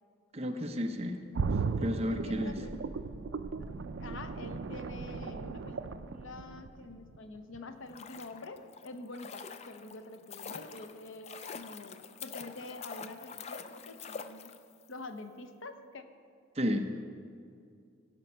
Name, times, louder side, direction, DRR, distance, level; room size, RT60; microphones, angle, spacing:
voice 1, 0.3-1.2 1.8-2.5 16.6-17.0, equal, 30° right, 5 dB, 0.7 m, -32 dB
sound 1, 1.3-7.2 7.5-7.6, right 4 dB, 70° right, 0.4 m, -36 dB
voice 2, 2.1-2.8 4.0-14.6 14.9-16.0, left 2 dB, 80° left, 8 dB, 0.8 m, -46 dB
sound 2, 7.7-14.9 15.2-15.3, left 6 dB, 30° left, 0.4 m, -46 dB
16.5 x 5.6 x 5.5 m, 2.3 s
head